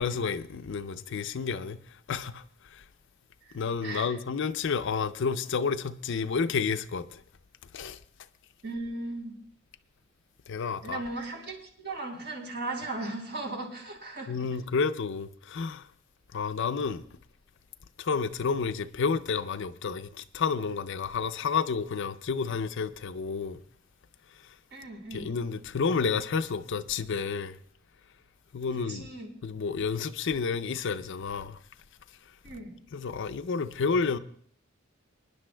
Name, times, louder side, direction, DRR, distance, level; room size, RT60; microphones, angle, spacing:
voice 1, 0.0-1.8 2.1-2.8 3.5-7.2 7.7-8.0 10.5-11.0 14.3-15.9 16.3-17.0 18.0-23.6 24.4-24.5 25.1-27.6 28.5-29.1 29.4-31.6 32.9-34.2, left 5 dB, 65° left, 0.5 m, -30 dB
voice 2, 3.4-4.1 8.6-9.4 10.8-14.5 24.7-25.3 28.7-29.3 32.4-32.8, right 2 dB, 60° right, 3.5 m, -37 dB
26.0 x 10.5 x 2.2 m
head